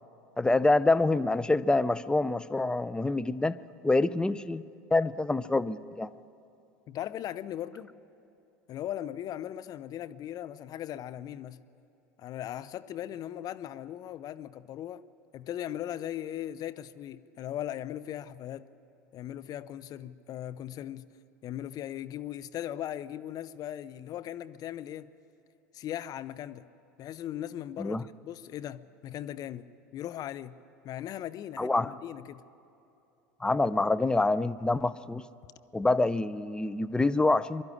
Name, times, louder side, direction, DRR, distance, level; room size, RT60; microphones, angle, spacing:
voice 1, 0.4-3.6 3.8-4.6 4.9-6.1 27.8-28.0 31.6-31.9 33.4-35.2 35.7-37.6, left 2 dB, 10° left, 0.5 m, -26 dB
voice 2, 6.9-7.9 8.7-11.6 12.2-15.0 15.3-18.7 19.1-21.1 21.4-25.1 25.7-26.7 27.0-28.0 28.2-30.6 30.8-32.4, left 11 dB, 45° left, 0.7 m, -38 dB
23.5 x 12.0 x 9.9 m
hypercardioid pair, 80°, 9 cm